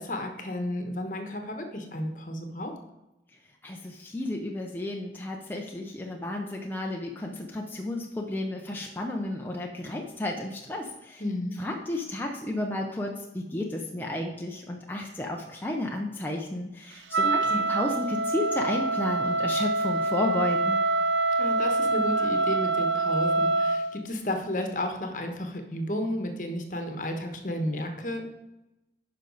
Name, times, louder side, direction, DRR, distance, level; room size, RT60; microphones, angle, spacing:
voice 1, 0.0-2.7 11.2-11.5 17.2-17.6 21.4-28.3, left 1 dB, 45° left, 5 dB, 1.1 m, -32 dB
voice 2, 3.6-11.2 11.6-20.8, left 1 dB, 10° left, 0 dB, 0.6 m, -32 dB
Wind instrument woodwind instrument, 17.1-23.9, right 2 dB, 85° right, 0.5 m, -25 dB
10.0 x 5.7 x 3.9 m, 0.95 s
head